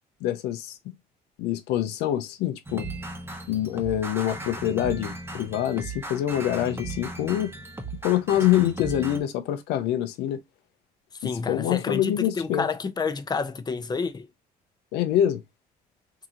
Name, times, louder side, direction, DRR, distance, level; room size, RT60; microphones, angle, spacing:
voice 1, 0.2-0.9 1.4-2.9 3.5-7.5 8.0-10.4 11.2-12.7 14.9-15.4, left 12 dB, 85° left, 0.6 m, -25 dB
sound 1, 2.7-9.2, right 2 dB, 15° right, 0.9 m, -36 dB
voice 2, 11.2-14.3, left 5 dB, 25° left, 0.6 m, -29 dB
3.7 x 2.7 x 2.7 m
cardioid pair, 110°, 17 cm